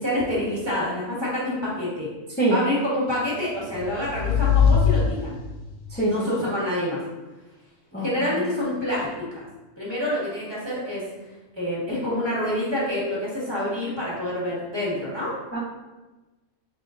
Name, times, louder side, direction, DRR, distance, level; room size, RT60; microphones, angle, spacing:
voice 1, 0.0-2.1 2.5-5.4 6.1-7.0 7.9-9.4 9.8-11.0 11.5-15.3, left 1 dB, 20° right, -7 dB, 1.5 m, -27 dB
sound 1, 3.4-5.8, left 7 dB, 85° left, 1.1 m, -22 dB
voice 2, 5.9-6.5 7.9-8.4 15.5-15.6, right 1 dB, 15° left, -7 dB, 0.4 m, -25 dB
5.5 x 3.6 x 2.5 m, 1.1 s
omnidirectional pair, 1.4 m